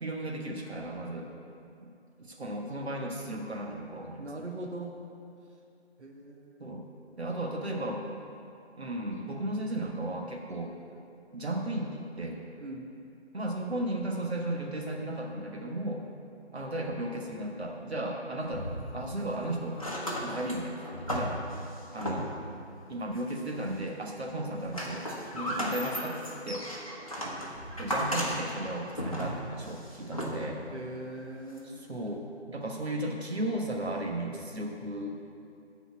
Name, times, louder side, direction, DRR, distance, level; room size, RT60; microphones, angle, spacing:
voice 1, 0.0-1.3 1.8-1.9 2.2-4.3 6.6-6.9 7.2-8.1 8.8-10.7 11.3-12.4 13.3-16.0 16.5-18.7 18.9-19.8 20.2-21.4 21.9-22.3 22.9-25.1 25.3-26.7 27.8-30.6 31.9-35.2, right 1 dB, 70° right, 0 dB, 1.3 m, -35 dB
voice 2, 4.2-5.0 6.0-6.7 12.6-12.9 30.7-32.4, right 1 dB, 85° right, 0 dB, 1.3 m, -41 dB
sound 1, 18.4-19.4 19.7-22.6 23.1-23.9 24.3-30.7 31.6-31.7, equal, 30° left, 0.9 m, -35 dB
10.0 x 4.2 x 7.2 m, 2.6 s
figure-of-eight pair, 180°, 34 cm